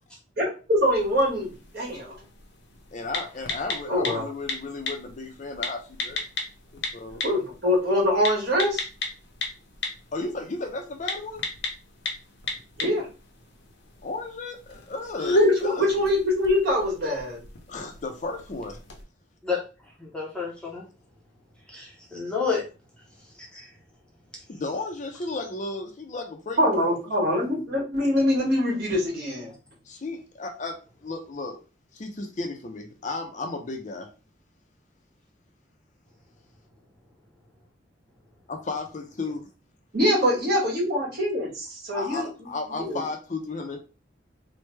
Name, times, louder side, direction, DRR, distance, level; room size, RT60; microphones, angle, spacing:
voice 1, 0.4-2.1 3.9-4.3 7.2-8.8 12.8-13.1 15.4-17.4 26.6-29.5 39.9-41.5 41.9-42.3 42.7-43.0, left 1 dB, 55° right, 1.6 m, -24 dB
sound 1, 0.8-19.0, left 2 dB, 75° left, 0.7 m, -34 dB
voice 2, 2.9-6.2 6.7-7.2 10.1-11.4 14.0-15.9 17.7-18.8 24.5-27.0 29.9-31.6 31.9-34.1 38.5-39.5 40.2-40.3 41.9-43.8, left 3 dB, 40° left, 0.5 m, -34 dB
voice 3, 20.0-20.8 21.7-22.6 23.5-23.7, left 5 dB, 5° left, 0.7 m, -29 dB
3.2 x 2.1 x 3.2 m
head